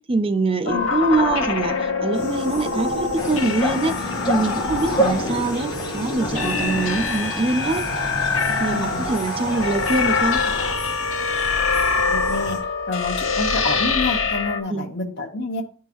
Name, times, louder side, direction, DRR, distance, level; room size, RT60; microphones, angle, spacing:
voice 1, 0.1-7.9 8.6-10.4 14.7-14.9, right 3 dB, 30° right, 0.5 m, -24 dB
voice 2, 0.6-1.0 8.6-9.2 9.5-9.7 12.0-12.6 12.9-15.6, left 2 dB, 60° left, 1.0 m, -28 dB
sound 1, 0.7-14.6, left 4 dB, 85° left, 1.0 m, -24 dB
sound 2, 2.1-12.6, left 2 dB, 40° left, 3.0 m, -38 dB
sound 3, 3.1-10.7, equal, 25° left, 1.4 m, -29 dB
10.0 x 3.7 x 3.0 m
head